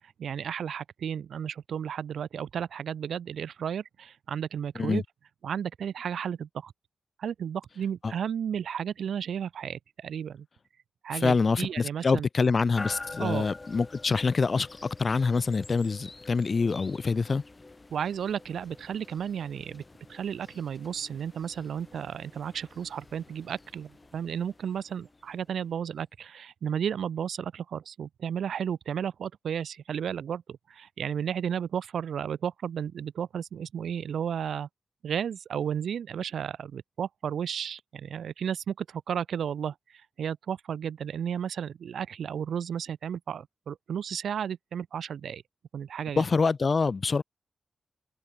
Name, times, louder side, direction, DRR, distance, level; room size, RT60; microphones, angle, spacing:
voice 1, 0.2-5.0 5.4-6.7 7.2-10.5 11.0-12.3 13.2-13.4 17.9-19.8 20.1-34.7 35.0-45.4 45.7-46.2, right 8 dB, 90° right, 0.3 m, -33 dB
voice 2, 11.1-17.4 46.2-47.2, left 4 dB, 50° left, 0.7 m, -26 dB
sound 1, 12.8-25.8, left 2 dB, 30° left, 4.6 m, -47 dB
cardioid pair, 75°, 0 cm